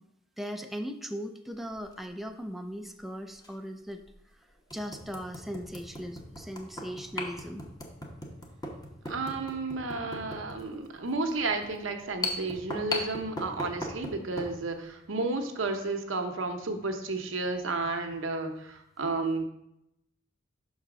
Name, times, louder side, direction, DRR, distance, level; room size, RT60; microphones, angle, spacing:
voice 1, 0.4-4.0 4.7-7.6, equal, ahead, 4 dB, 0.4 m, -38 dB
sound 1, 1.7-1.9 3.4-3.5 4.1-4.2 4.7-14.6, left 1 dB, 20° left, 0.9 m, -38 dB
voice 2, 9.0-19.4, right 3 dB, 85° right, 5 dB, 0.8 m, -32 dB
5.6 x 4.0 x 6.0 m, 0.82 s
head